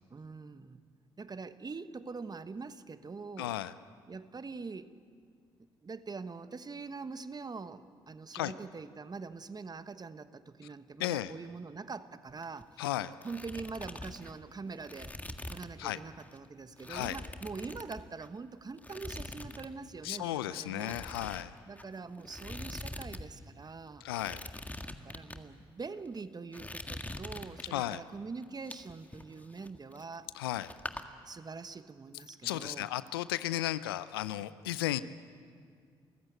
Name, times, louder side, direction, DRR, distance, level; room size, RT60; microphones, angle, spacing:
voice 1, 0.1-0.8 1.2-3.6 4.1-4.9 5.6-12.9 13.2-15.1 15.5-21.0 21.7-24.1 24.8-30.3 31.2-32.9, right 4 dB, 35° right, 12 dB, 1.2 m, -44 dB
voice 2, 3.4-3.7 8.3-8.5 11.0-11.3 12.8-13.1 15.8-16.0 16.9-17.2 20.0-21.5 24.0-24.4 27.7-28.0 30.3-30.7 32.4-35.0, left 14 dB, 90° left, 16 dB, 0.5 m, -34 dB
sound 1, 12.3-12.8 13.1-15.8 16.2-16.4 16.8-18.4 18.8-19.7 20.0-20.2 20.8-23.2 23.5-23.6 24.1-25.4 26.0-26.2 26.5-28.0 28.4-30.3 30.5-31.0, left 1 dB, 15° left, 1.8 m, -44 dB
28.5 x 15.0 x 9.3 m, 2.1 s
hypercardioid pair, 45°, 12 cm